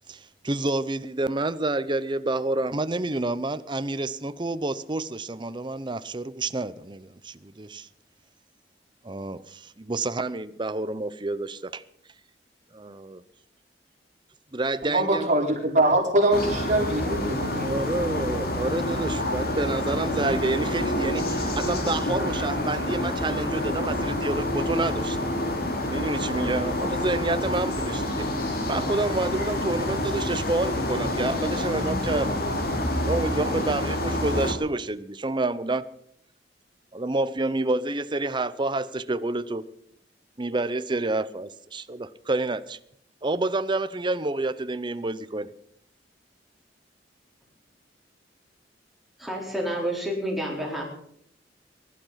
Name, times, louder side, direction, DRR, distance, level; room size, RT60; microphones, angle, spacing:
voice 1, 0.1-7.9 9.0-11.8 12.7-13.2 14.5-15.3 17.6-25.2 25.9-28.3 28.7-32.4 33.1-35.9 36.9-39.7 40.4-42.8 43.2-45.5, right 2 dB, 25° right, 0.7 m, -28 dB
voice 2, 14.8-17.7, right 1 dB, 45° right, 4.5 m, -23 dB
sound 1, 16.3-34.5, left 1 dB, 60° left, 2.7 m, -28 dB
voice 3, 49.2-50.8, equal, ahead, 4.3 m, -29 dB
19.5 x 12.0 x 5.8 m
head